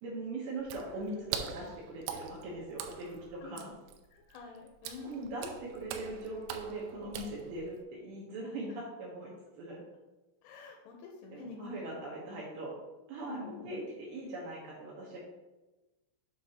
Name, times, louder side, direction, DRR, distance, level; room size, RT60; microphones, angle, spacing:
voice 1, 0.0-3.7 5.0-9.8 11.3-12.7 13.1-15.2, right 2 dB, 70° right, -5 dB, 2.9 m, -41 dB
Water / Splash splatter, 0.6-7.8, right 8 dB, 85° right, 3.2 m, -43 dB
voice 2, 4.1-5.5 10.4-12.0 13.2-13.8, left 4 dB, 80° left, 0 dB, 3.2 m, -48 dB
8.0 x 6.1 x 2.9 m, 1.1 s
omnidirectional pair, 5.8 m